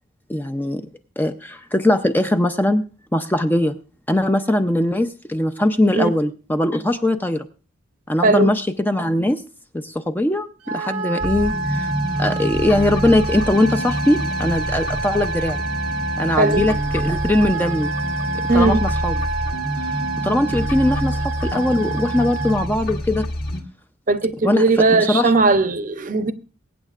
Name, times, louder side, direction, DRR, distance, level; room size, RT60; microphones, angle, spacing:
voice 1, 0.3-0.8 1.2-2.8 3.1-3.7 4.1-7.4 8.1-9.4 9.7-11.9 12.2-15.6 16.2-17.9 18.5-19.2 20.2-23.2 24.4-24.6 24.9-25.3, left 1 dB, 10° left, 0.5 m, -20 dB
voice 2, 8.2-8.5 16.4-16.6 18.5-18.8 24.1-26.3, right 3 dB, 40° right, 0.7 m, -18 dB
Wind instrument woodwind instrument, 10.6-22.7, right 4 dB, 90° right, 1.0 m, -28 dB
sound 1, 11.2-23.6, equal, 45° left, 1.6 m, -27 dB
22.5 x 9.0 x 2.4 m
head